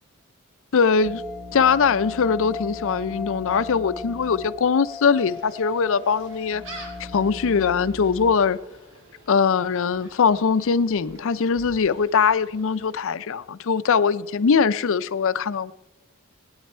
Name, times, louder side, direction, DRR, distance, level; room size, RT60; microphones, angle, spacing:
voice 1, 0.7-1.2 1.5-8.6 9.3-15.7, left 6 dB, 65° left, 0.5 m, -21 dB
sound 1, 0.9-8.0, left 5 dB, 10° left, 1.1 m, -38 dB
sound 2, 1.0-4.6 4.9-5.0 5.6-8.4, equal, 85° right, 4.4 m, -41 dB
Gull seagull, 5.1-12.9, right 2 dB, 65° right, 3.0 m, -48 dB
19.5 x 9.6 x 4.4 m
head